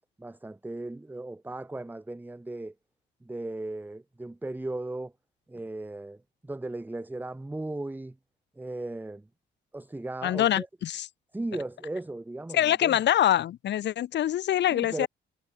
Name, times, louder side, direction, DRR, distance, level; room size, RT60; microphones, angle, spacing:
voice 1, 0.2-2.7 3.2-5.1 5.5-8.2 8.6-9.3 9.7-10.7 11.3-13.0 14.7-15.1, right 2 dB, 10° right, 0.9 m, -36 dB
voice 2, 10.2-11.1 12.5-15.1, left 11 dB, 60° left, 0.8 m, -25 dB
cardioid pair, 90°, 20 cm